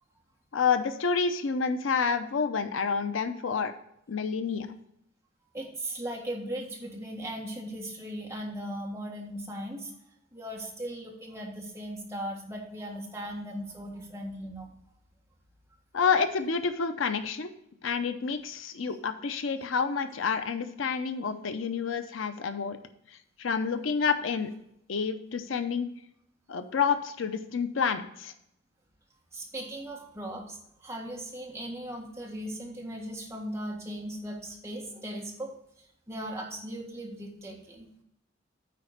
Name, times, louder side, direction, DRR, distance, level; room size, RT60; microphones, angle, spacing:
voice 1, 0.5-3.7 4.1-4.7 15.9-17.5 17.8-22.8 23.1-24.5 24.9-25.9 26.5-28.3, left 5 dB, 75° left, 9 dB, 0.6 m, -29 dB
voice 2, 5.5-9.9 10.3-14.7 29.3-35.5 36.1-37.9, right 1 dB, 15° right, -1 dB, 1.6 m, -38 dB
9.4 x 4.3 x 6.4 m, 0.74 s
head